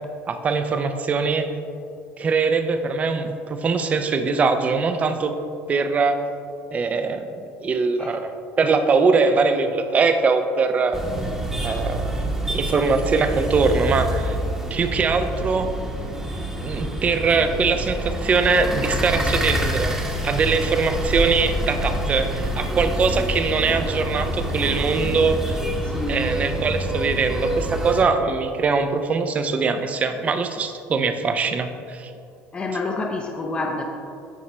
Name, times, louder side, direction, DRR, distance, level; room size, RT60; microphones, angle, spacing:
voice 1, 0.3-1.5 2.2-5.4 5.7-6.2 6.7-7.2 7.6-11.0 11.6-14.4 14.7-15.7 16.6-20.0 20.2-25.6 26.1-32.1, right 4 dB, 30° right, 8 dB, 0.5 m, -22 dB
sound 1, 10.9-28.0, right 1 dB, 10° right, 1.0 m, -27 dB
voice 2, 25.8-26.2 32.5-33.8, left 3 dB, 25° left, 2 dB, 0.6 m, -28 dB
9.9 x 4.2 x 3.2 m, 2.5 s
supercardioid pair, 105°, 5 cm